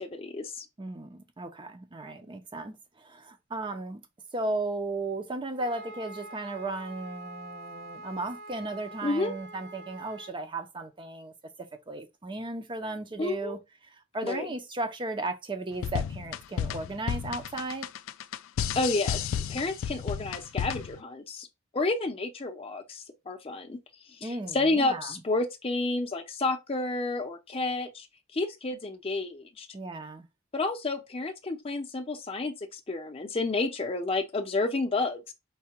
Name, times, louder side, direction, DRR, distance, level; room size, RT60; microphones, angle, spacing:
voice 1, 0.0-0.7 9.0-9.3 13.2-13.6 14.2-14.5 18.8-21.5 21.7-23.8 24.2-28.1 28.3-29.7 30.5-35.3, left 2 dB, 25° left, 0.6 m, -30 dB
voice 2, 0.8-4.0 4.3-11.3 11.6-13.6 13.9-17.9 24.2-25.2 29.7-30.2, right 2 dB, 25° right, 0.5 m, -35 dB
Wind instrument woodwind instrument, 5.5-10.4, right 2 dB, 60° right, 1.1 m, -45 dB
sound 1, 15.7-21.0, left 8 dB, 70° left, 0.3 m, -32 dB
4.6 x 2.2 x 4.3 m
head